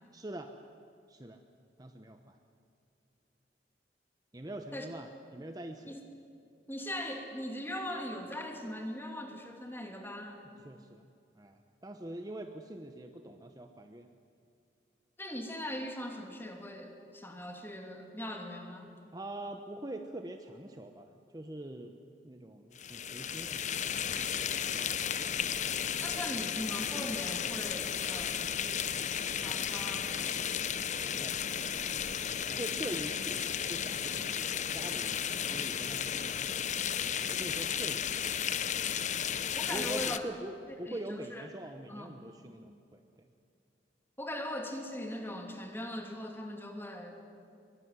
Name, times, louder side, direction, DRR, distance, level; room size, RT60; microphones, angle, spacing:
voice 1, 0.1-0.5 1.1-1.4 1.8-2.4 4.3-6.0 10.6-11.1 11.3-14.1 19.1-22.0 22.2-23.7 31.0-31.4 32.2-33.4 33.7-36.9 37.3-38.2 39.7-43.3, right 1 dB, 20° right, 5 dB, 1.0 m, -44 dB
voice 2, 6.7-10.4 15.2-18.9 26.0-29.0 29.3-30.5 35.5-35.6 39.5-40.3 40.9-41.5 41.9-42.1 44.2-47.2, left 1 dB, 15° left, 3 dB, 2.8 m, -40 dB
sound 1, 22.7-40.2, left 8 dB, 45° left, 0.8 m, -34 dB
23.0 x 23.0 x 9.7 m, 2.5 s
head